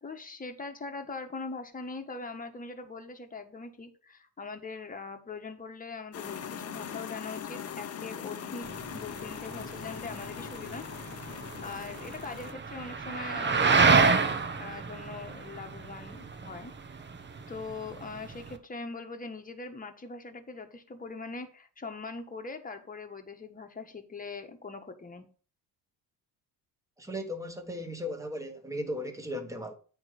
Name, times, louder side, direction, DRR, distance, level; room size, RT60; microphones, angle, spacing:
voice 1, 0.0-10.8 11.3-16.7 17.5-25.3, left 4 dB, 20° left, 1.3 m, -42 dB
sound 1, 6.1-12.5, left 9 dB, 35° left, 0.8 m, -41 dB
sound 2, 6.2-10.2, right 2 dB, 50° right, 2.3 m, -53 dB
sound 3, 8.6-18.6, right 4 dB, 25° right, 1.0 m, -29 dB
voice 2, 27.0-29.7, equal, 10° right, 1.5 m, -36 dB
8.8 x 3.3 x 6.4 m
cardioid pair, 95°, 41 cm